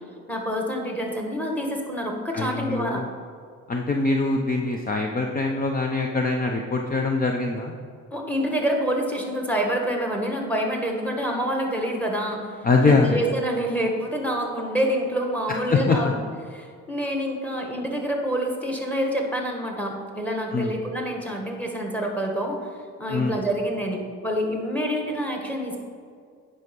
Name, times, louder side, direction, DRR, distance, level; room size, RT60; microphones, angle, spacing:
voice 1, 0.3-3.0 8.1-12.6 12.8-16.2 16.5-22.6 23.0-25.9, equal, 5° left, 1 dB, 1.7 m, -27 dB
voice 2, 2.3-3.1 3.7-7.7 12.6-13.2 15.7-16.1 20.5-20.7 23.1-23.4, left 3 dB, 30° left, 2 dB, 0.7 m, -23 dB
9.3 x 5.6 x 5.3 m, 2.1 s
cardioid pair, 90°, 30 cm